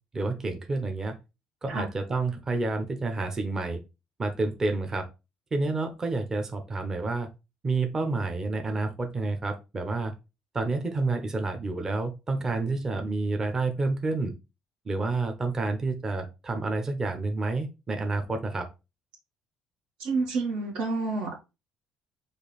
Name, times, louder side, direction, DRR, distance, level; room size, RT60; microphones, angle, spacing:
voice 1, 0.1-1.2 1.6-3.8 4.2-5.1 5.5-7.3 7.6-10.1 10.5-14.3 14.9-18.7, right 3 dB, 25° right, 5 dB, 0.7 m, -29 dB
voice 2, 20.0-21.4, right 3 dB, 80° right, -2 dB, 1.4 m, -29 dB
5.1 x 2.4 x 3.9 m, 0.26 s
cardioid pair, 140°, 2 cm